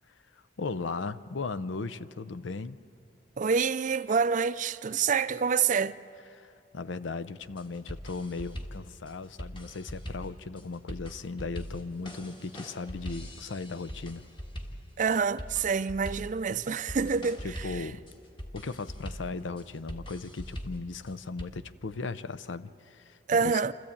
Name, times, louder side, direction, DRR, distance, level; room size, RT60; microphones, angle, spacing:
voice 1, 0.6-2.8 6.3-14.2 17.4-18.0 18.5-23.6, left 4 dB, 85° left, 0.6 m, -37 dB
voice 2, 3.4-6.0 15.0-17.9 23.3-23.7, right 5 dB, 45° right, 0.4 m, -27 dB
sound 1, 7.4-21.4, equal, 25° left, 1.5 m, -42 dB
27.5 x 14.0 x 8.6 m
head